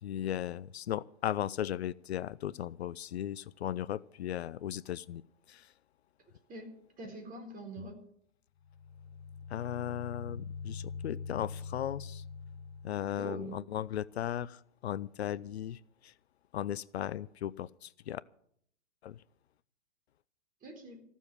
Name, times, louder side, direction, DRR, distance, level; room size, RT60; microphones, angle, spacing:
voice 1, 0.0-5.2 5.5-5.7 9.5-12.2 12.8-16.1 16.5-18.2 19.0-19.2, left 11 dB, 65° left, 21 dB, 0.5 m, -37 dB
voice 2, 6.5-8.0 13.1-13.6 20.6-21.0, right 2 dB, 25° right, 4 dB, 4.3 m, -44 dB
sound 1, 8.6-13.4, left 5 dB, 35° left, 0.8 m, -43 dB
15.5 x 7.2 x 9.9 m, 0.67 s
figure-of-eight pair, 110°, 34 cm